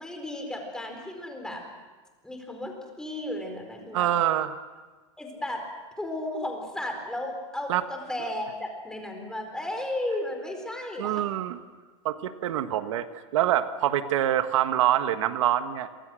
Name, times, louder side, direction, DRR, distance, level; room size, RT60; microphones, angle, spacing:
voice 1, 0.0-1.6 2.2-2.7 3.0-4.1 5.2-5.6 6.0-11.2, left 1 dB, 5° left, 3 dB, 4.4 m, -34 dB
voice 2, 3.9-4.6 7.7-7.8 11.0-11.6 12.0-13.1 13.3-15.9, right 12 dB, 80° right, 9 dB, 1.6 m, -25 dB
29.5 x 25.0 x 6.4 m, 1.3 s
supercardioid pair, 155°, 16 cm